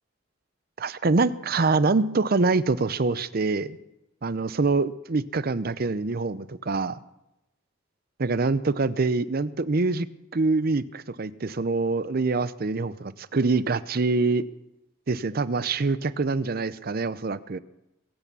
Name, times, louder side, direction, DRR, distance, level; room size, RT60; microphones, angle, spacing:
voice 1, 0.8-3.8 4.2-7.0 8.2-10.1 10.3-14.5 15.1-17.6, right 3 dB, 50° right, 15 dB, 0.6 m, -25 dB
22.0 x 8.5 x 6.9 m, 0.91 s
head